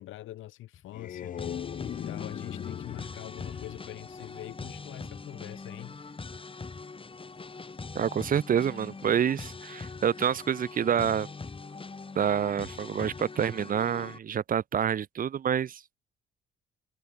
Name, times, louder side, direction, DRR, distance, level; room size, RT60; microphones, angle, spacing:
voice 1, 0.0-1.5 1.8-6.1, left 15 dB, 85° left, 1.7 m, -44 dB
sound 1, 0.7-5.0, left 10 dB, 45° left, 0.4 m, -39 dB
sound 2, 1.4-14.2, left 4 dB, 25° left, 3.6 m, -42 dB
voice 2, 7.9-11.3 12.2-16.0, right 8 dB, 45° right, 0.7 m, -27 dB
cardioid pair, 90°, 20 cm